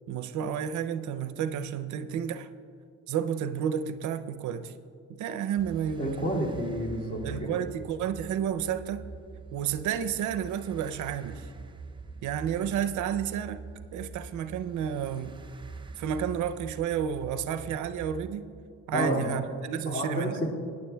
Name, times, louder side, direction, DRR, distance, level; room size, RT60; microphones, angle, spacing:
voice 1, 0.1-2.5 3.1-4.7 5.1-6.3 7.2-9.1 9.5-11.5 12.2-13.6 13.9-15.4 16.0-18.5 18.9-20.4, right 8 dB, 75° right, 11 dB, 0.5 m, -31 dB
sound 1, 5.6-18.3, right 4 dB, 15° right, 0.5 m, -45 dB
voice 2, 6.0-7.6 18.9-19.4 19.9-20.5, equal, 30° left, -2 dB, 2.2 m, -30 dB
17.0 x 9.7 x 2.2 m, 2.3 s
cardioid pair, 90°, 30 cm